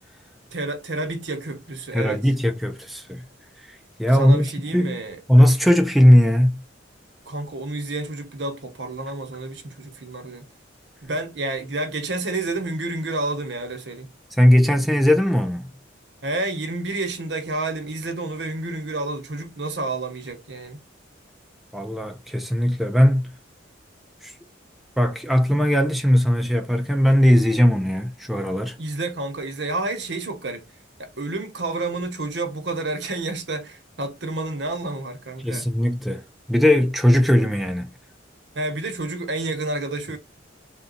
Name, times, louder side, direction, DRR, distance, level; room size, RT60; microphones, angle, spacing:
voice 1, 0.5-2.3 4.1-5.2 7.3-10.5 11.0-14.1 16.2-20.8 28.8-30.7 31.0-35.7 38.5-40.2, right 2 dB, 65° right, 1.0 m, -29 dB
voice 2, 1.9-3.2 3.6-4.5 4.7-5.0 5.3-6.6 14.4-15.7 21.7-23.3 24.2-24.3 25.0-28.8 35.4-36.2 36.5-37.9, equal, ahead, 0.5 m, -18 dB
3.9 x 2.3 x 3.9 m
head